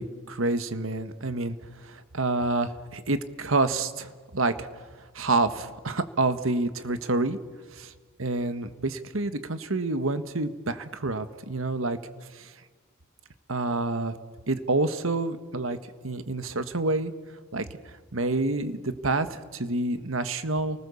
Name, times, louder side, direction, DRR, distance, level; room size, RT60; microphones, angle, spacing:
voice 1, 0.0-1.6 1.8-4.7 5.1-7.4 7.7-7.9 8.2-12.0 12.3-12.5 13.5-14.2 14.5-15.8 16.0-17.1 17.5-17.7 18.1-20.8, right 2 dB, 80° right, 10 dB, 1.5 m, -28 dB
29.5 x 20.0 x 7.1 m, 1.4 s
head